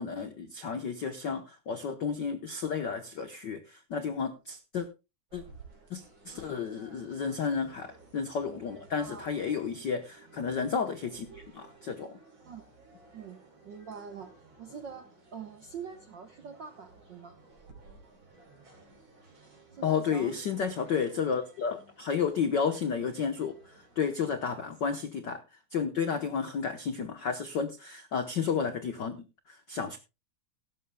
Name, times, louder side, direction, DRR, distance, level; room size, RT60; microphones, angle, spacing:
voice 1, 0.0-4.9 5.3-5.4 5.9-12.2 19.8-30.0, left 6 dB, 75° left, 9 dB, 1.0 m, -32 dB
sound 1, 5.3-24.8, right 3 dB, 40° right, 4.3 m, -56 dB
voice 2, 8.9-9.3 12.5-12.6 13.1-17.4 19.7-20.4 24.4-24.5, right 6 dB, 70° right, 7 dB, 1.1 m, -45 dB
16.5 x 13.0 x 2.2 m, 0.27 s
omnidirectional pair, 3.5 m